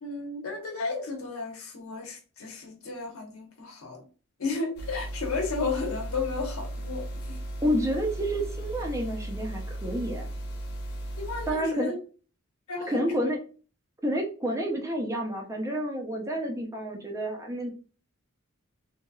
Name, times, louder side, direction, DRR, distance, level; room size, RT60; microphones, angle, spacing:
voice 1, 0.0-4.0 4.4-7.4 11.2-12.0 12.7-13.3, left 4 dB, 80° left, 1.0 m, -33 dB
sound 1, 4.8-11.5, right 1 dB, 50° left, 0.7 m, -36 dB
voice 2, 7.6-10.3 11.5-11.9 12.9-13.4 14.0-17.7, equal, 15° right, 0.5 m, -29 dB
3.0 x 2.8 x 2.3 m
head